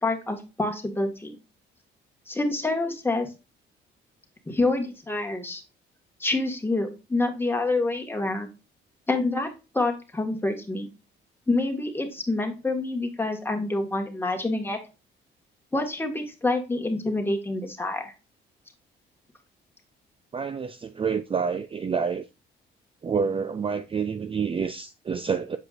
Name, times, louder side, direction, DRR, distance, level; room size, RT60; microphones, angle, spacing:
voice 1, 0.0-1.3 2.3-3.3 4.5-5.6 6.2-8.5 9.1-9.5 9.7-10.9 11.5-14.8 15.7-18.1, left 2 dB, 10° left, 1.8 m, -27 dB
voice 2, 20.3-22.3 23.0-25.6, right 6 dB, 25° right, 0.4 m, -28 dB
8.0 x 4.8 x 2.5 m
cardioid pair, 90°, 20 cm